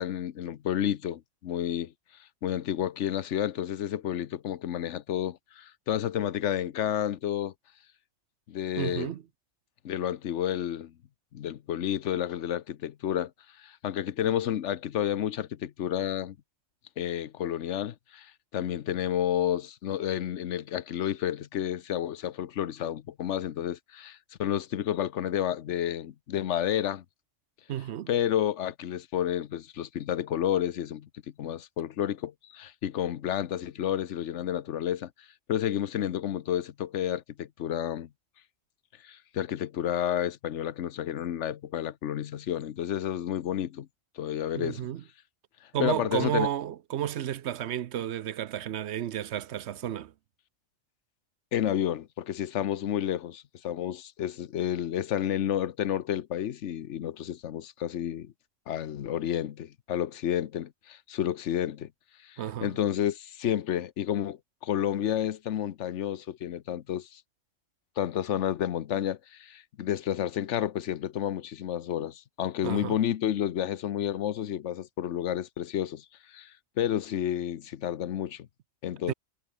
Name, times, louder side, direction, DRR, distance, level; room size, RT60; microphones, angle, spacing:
voice 1, 0.0-1.9 2.4-7.5 8.5-9.1 9.8-10.9 11.3-13.3 13.6-16.4 17.0-27.0 28.1-31.1 31.4-35.1 35.5-38.1 39.0-43.9 44.2-44.9 45.8-46.5 51.5-58.3 58.7-61.9 62.2-67.2 68.0-78.5 78.8-79.1, left 10 dB, 70° left, 1.1 m, -30 dB
voice 2, 8.8-9.2 27.7-28.1 44.5-45.0 45.7-50.1 62.4-62.7 72.6-73.0 79.1-79.2, right 11 dB, 65° right, 0.9 m, -32 dB
omnidirectional pair, 1.3 m